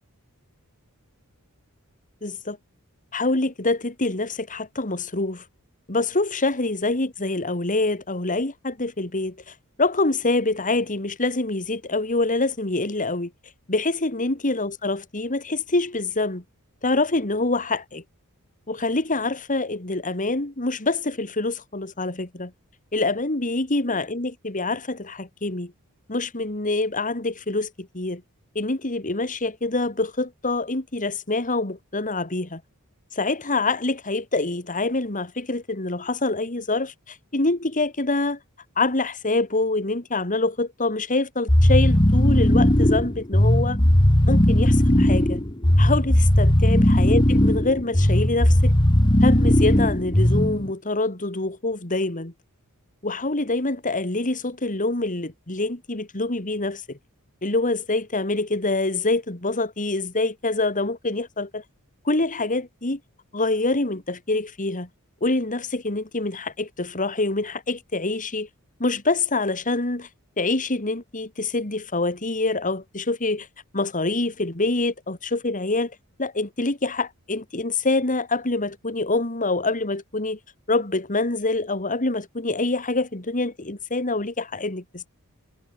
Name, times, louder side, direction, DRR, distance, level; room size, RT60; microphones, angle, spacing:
voice 1, 2.2-2.6 3.1-5.4 5.9-13.3 13.7-16.4 16.8-18.0 18.7-22.5 22.9-25.7 26.1-28.2 28.5-32.6 33.1-38.4 38.8-43.8 44.3-45.4 45.8-48.7 49.2-52.3 53.0-57.0 57.4-61.6 62.0-63.0 63.3-64.9 65.2-68.5 68.8-70.1 70.4-73.5 73.7-75.9 76.2-80.4 80.7-85.1, left 2 dB, 35° left, 2.7 m, -25 dB
sound 1, 41.5-50.7, left 1 dB, 20° left, 1.7 m, -18 dB
head